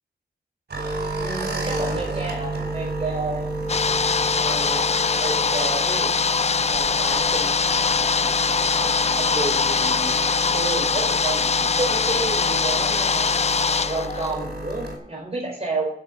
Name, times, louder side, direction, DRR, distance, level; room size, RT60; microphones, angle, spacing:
sound 1, 0.7-15.0, right 1 dB, 75° right, 5.1 m, -31 dB
voice 1, 1.2-3.4 4.4-6.1 6.4-7.5 8.7-13.2 13.8-15.9, right 2 dB, 35° right, -1 dB, 4.8 m, -31 dB
sound 2, 3.7-14.3, left 5 dB, 40° left, 0.6 m, -22 dB
15.5 x 7.0 x 5.9 m, 0.69 s
cardioid pair, 70°, 17 cm